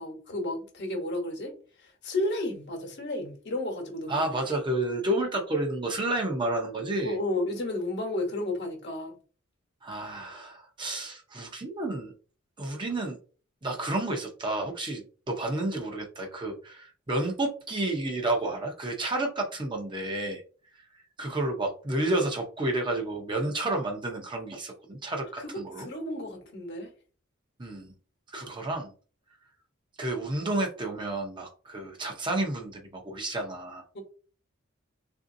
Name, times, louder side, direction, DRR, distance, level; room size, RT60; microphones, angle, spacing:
voice 1, 0.0-1.5 1.8-4.3 7.0-9.1 25.4-25.5 25.8-26.9 33.9-34.0, left 1 dB, 55° left, 1.1 m, -32 dB
voice 2, 4.1-7.2 9.8-12.1 12.6-13.2 13.6-20.4 21.2-25.9 27.6-27.9 28.3-28.9 30.0-33.8, right 2 dB, 25° right, 0.7 m, -31 dB
3.5 x 2.6 x 2.6 m
head